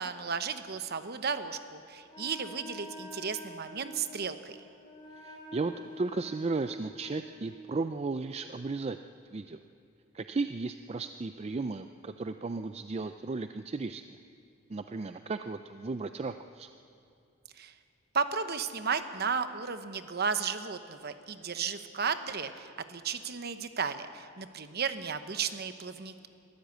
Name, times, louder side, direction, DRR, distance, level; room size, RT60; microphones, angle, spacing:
voice 1, 0.0-4.6 17.6-17.7 18.1-26.3, right 6 dB, 50° right, 10 dB, 1.0 m, -34 dB
Wind instrument woodwind instrument, 2.1-7.6, left 1 dB, 25° left, 3.7 m, -47 dB
voice 2, 5.2-9.0 9.3-9.6 10.1-14.2 14.7-16.7, right 3 dB, 30° right, 9 dB, 0.4 m, -35 dB
22.5 x 15.0 x 8.1 m, 2.6 s
head